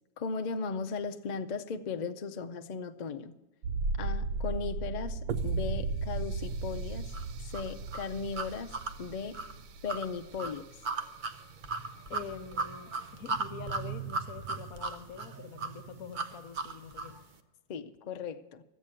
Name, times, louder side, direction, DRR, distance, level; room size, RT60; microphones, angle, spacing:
voice 1, 0.2-3.3 4.0-7.1 7.4-9.4 9.8-10.7 17.7-18.6, left 5 dB, 90° left, 6 dB, 0.4 m, -37 dB
sound 1, 3.6-10.4 10.7-10.8, right 3 dB, 70° right, 1.0 m, -35 dB
sound 2, 7.1-17.2, right 4 dB, 50° right, 0.5 m, -37 dB
voice 2, 12.1-17.1, left 7 dB, 65° left, 10 dB, 1.2 m, -45 dB
13.0 x 8.4 x 8.8 m, 1.0 s
omnidirectional pair, 1.7 m